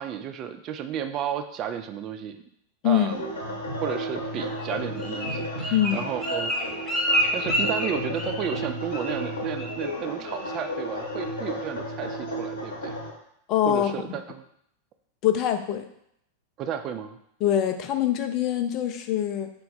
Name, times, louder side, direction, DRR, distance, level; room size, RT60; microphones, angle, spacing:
voice 1, 0.0-2.4 2.8-3.3 3.8-6.9 7.3-13.0 13.7-14.4 16.6-17.2, right 8 dB, 35° right, 8 dB, 0.3 m, -33 dB
sound 1, 3.1-13.1, equal, 70° left, 0.9 m, -33 dB
Bird, 4.6-8.6 8.9-9.3 9.6-9.9 10.2-10.6 11.0-11.1, equal, 20° left, 0.9 m, -28 dB
voice 2, 5.7-6.0 13.5-13.9 15.2-15.9 17.4-19.5, left 11 dB, 40° left, 8 dB, 0.4 m, -24 dB
4.7 x 2.2 x 3.9 m, 0.73 s
figure-of-eight pair, 90°, 0 cm